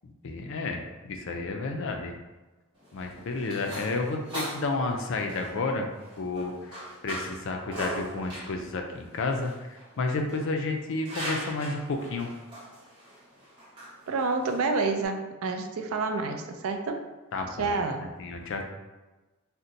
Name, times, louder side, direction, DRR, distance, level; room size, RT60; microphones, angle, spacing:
voice 1, 0.0-2.1 2.9-5.9 6.2-6.8 7.0-12.3 17.3-18.7, left 3 dB, 60° left, 3 dB, 0.4 m, -31 dB
sound 1, 2.7-15.1, right 1 dB, 20° right, 0.9 m, -41 dB
voice 2, 14.1-17.0 17.6-18.1, right 3 dB, 70° right, 5 dB, 0.4 m, -28 dB
2.7 x 2.1 x 3.8 m, 1.2 s
head